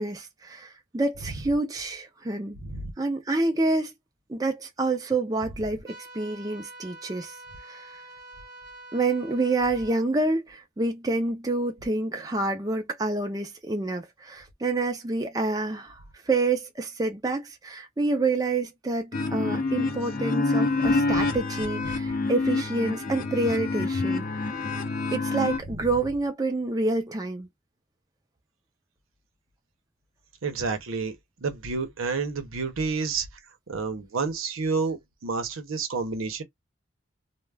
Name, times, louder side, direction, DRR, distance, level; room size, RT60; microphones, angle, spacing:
voice 1, 0.0-2.6 3.0-3.9 4.3-7.3 7.6-7.9 8.9-16.0 16.3-24.3 25.1-27.5, right 2 dB, 20° right, 0.4 m, -28 dB
voice 2, 2.6-2.9 21.1-21.2 30.4-31.2 31.4-33.3 33.7-36.4, right 4 dB, 90° right, 0.7 m, -29 dB
sound 1, 5.8-10.0, right 2 dB, 50° right, 0.8 m, -46 dB
sound 2, 19.1-25.6, left 3 dB, 45° left, 0.5 m, -27 dB
2.3 x 2.1 x 3.2 m
head